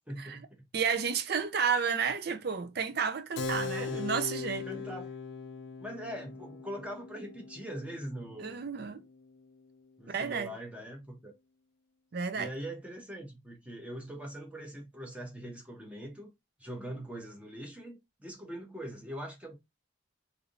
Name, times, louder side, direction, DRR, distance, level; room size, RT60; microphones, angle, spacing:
voice 1, 0.1-0.5 3.7-4.1 4.7-5.0 5.8-8.6 10.0-11.3 12.3-16.3 16.6-19.5, right 1 dB, 5° right, 0.9 m, -42 dB
voice 2, 0.7-4.7 8.4-9.0 10.1-10.5 12.1-12.5, right 6 dB, 55° right, 0.5 m, -31 dB
Keyboard (musical), 3.4-9.5, left 4 dB, 65° left, 0.5 m, -40 dB
3.4 x 2.6 x 2.5 m
head